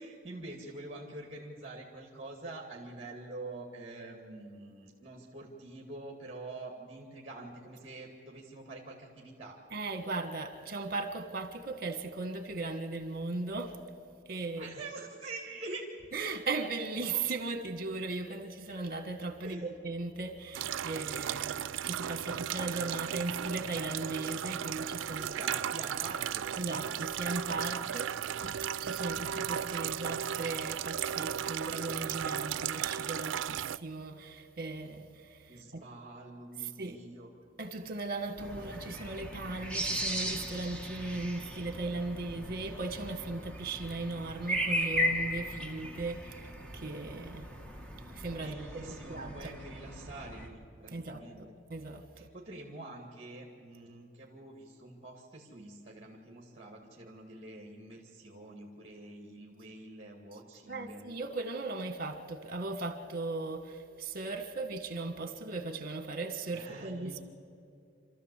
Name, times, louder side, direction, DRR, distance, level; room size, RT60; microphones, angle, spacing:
voice 1, 0.0-9.6 14.6-15.8 19.4-19.7 25.1-26.6 35.5-37.3 48.3-51.5 52.2-61.1 66.5-67.2, right 2 dB, 30° right, 2.1 m, -46 dB
voice 2, 9.7-13.8 14.2-14.7 16.1-25.3 26.6-35.8 36.6-37.0 37.6-47.5 48.1-49.5 50.9-52.3 60.7-67.2, right 3 dB, 50° right, 1.6 m, -38 dB
sound 1, 20.5-33.8, right 9 dB, 80° right, 0.4 m, -35 dB
sound 2, 38.4-50.5, equal, 5° left, 1.6 m, -37 dB
27.0 x 13.5 x 8.4 m
head